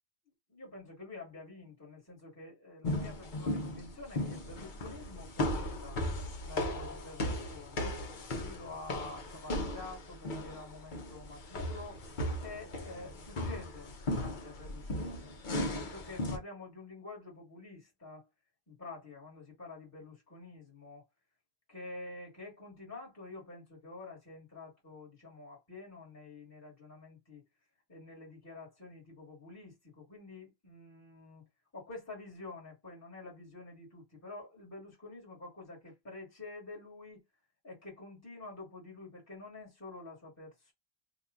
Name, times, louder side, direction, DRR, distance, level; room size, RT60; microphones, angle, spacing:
voice 1, 0.2-6.0 6.4-8.0 8.3-18.3 18.7-21.0 21.7-27.4 27.9-31.4 31.7-37.2 37.6-40.7, left 3 dB, 15° left, 1.5 m, -48 dB
sound 1, 2.8-16.4, left 1 dB, 50° left, 0.9 m, -37 dB
2.8 x 2.3 x 3.6 m
omnidirectional pair, 1.0 m